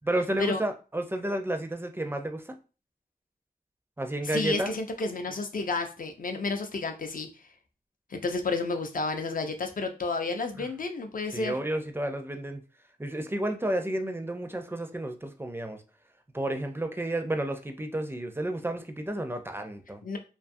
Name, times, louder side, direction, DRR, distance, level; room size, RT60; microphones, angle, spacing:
voice 1, 0.0-2.5 4.0-4.7 10.6-10.7 11.3-12.6 13.0-15.8 16.3-20.0, right 1 dB, 15° right, 0.4 m, -31 dB
voice 2, 4.2-7.5 8.1-11.6 20.0-20.2, left 3 dB, 60° left, 0.5 m, -31 dB
2.6 x 2.3 x 2.5 m
wide cardioid pair, 60°, 16 cm